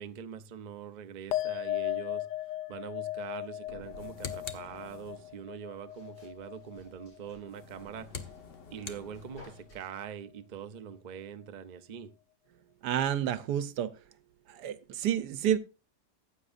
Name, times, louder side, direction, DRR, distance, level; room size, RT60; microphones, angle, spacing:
voice 1, 0.0-2.3 2.7-8.3 8.7-12.1, right 8 dB, 45° right, 0.5 m, -43 dB
sound 1, 1.3-8.0 8.3-8.9, left 14 dB, 90° left, 1.3 m, -37 dB
sound 2, 3.6-9.8, equal, 70° left, 7.8 m, -57 dB
sound 3, 3.8-5.4 7.4-9.7, left 6 dB, 40° left, 1.0 m, -45 dB
voice 2, 12.8-13.9 14.5-15.6, right 10 dB, 80° right, 1.3 m, -29 dB
15.0 x 9.0 x 2.6 m
omnidirectional pair, 1.7 m